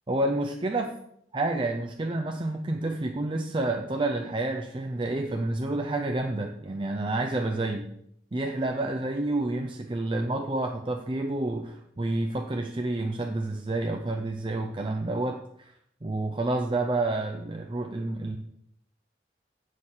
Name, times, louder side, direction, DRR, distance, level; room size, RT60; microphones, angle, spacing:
voice 1, 0.1-1.0 1.3-7.9 8.3-15.7 16.0-18.4, right 2 dB, 30° right, 3 dB, 0.5 m, -29 dB
8.1 x 6.5 x 5.6 m, 0.72 s
head